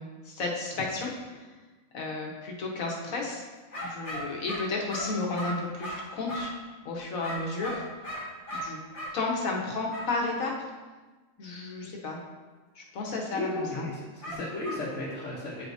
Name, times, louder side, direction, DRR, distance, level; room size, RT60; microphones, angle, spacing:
voice 1, 0.0-1.4 1.9-3.4 3.8-6.5 6.8-7.8 8.6-8.8 9.1-10.7 11.4-12.2 12.7-13.9, left 3 dB, 75° left, -2 dB, 1.5 m, -32 dB
sound 1, 3.7-6.6 7.2-9.2 9.9-10.1 14.2-14.9, equal, 25° left, 1.2 m, -37 dB
voice 2, 13.3-15.7, left 2 dB, 60° left, -7 dB, 1.3 m, -35 dB
9.1 x 4.8 x 2.6 m, 1.3 s
omnidirectional pair, 1.4 m